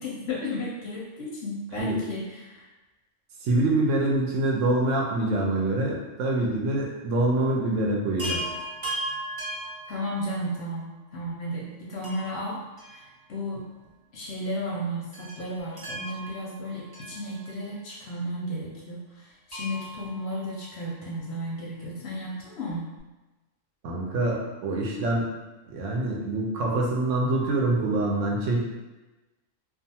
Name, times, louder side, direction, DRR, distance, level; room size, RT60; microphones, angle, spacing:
voice 1, 0.0-2.6 9.9-13.0 13.3-13.6 14.1-22.9, equal, 65° left, -4 dB, 0.7 m, -34 dB
voice 2, 3.4-8.4 23.8-25.3 25.7-28.6, right 2 dB, 75° right, -2 dB, 0.9 m, -25 dB
Chime, 8.2-10.6 12.0-13.6 13.8-13.9 15.1-17.8 19.5-21.1 22.7-22.8 23.0-23.1, right 1 dB, 40° right, 0.4 m, -37 dB
2.4 x 2.3 x 2.7 m, 1.1 s
omnidirectional pair, 1.3 m